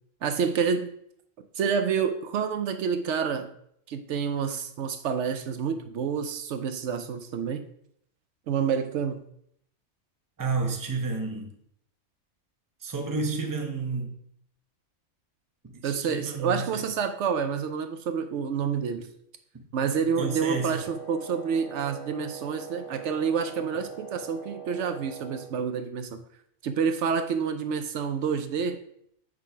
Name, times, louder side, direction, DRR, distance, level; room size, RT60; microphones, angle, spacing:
voice 1, 0.2-0.9 1.5-3.5 3.9-7.6 8.5-9.2 15.8-19.1 19.7-26.2 26.6-28.8, right 6 dB, 75° right, 0.9 m, -28 dB
voice 2, 10.4-11.5 12.8-14.1 15.6-16.8 19.5-19.7 20.2-20.8, right 4 dB, 20° right, 0.7 m, -31 dB
Wind instrument woodwind instrument, 20.1-25.5, right 6 dB, 20° left, 2.4 m, -42 dB
4.8 x 4.0 x 5.6 m
omnidirectional pair, 1.3 m